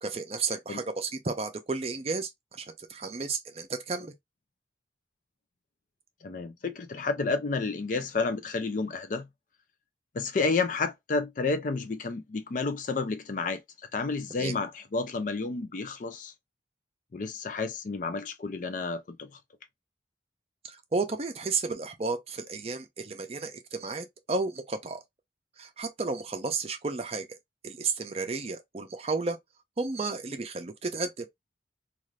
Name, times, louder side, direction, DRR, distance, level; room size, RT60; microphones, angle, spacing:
voice 1, 0.0-4.1 14.4-14.5 20.6-25.0 25.6-27.3 27.6-29.4 29.8-31.3, right 4 dB, 35° right, 0.5 m, -32 dB
voice 2, 6.2-9.2 10.1-13.6 13.9-16.3 17.1-19.3, left 4 dB, 45° left, 0.4 m, -30 dB
2.5 x 2.4 x 3.1 m
head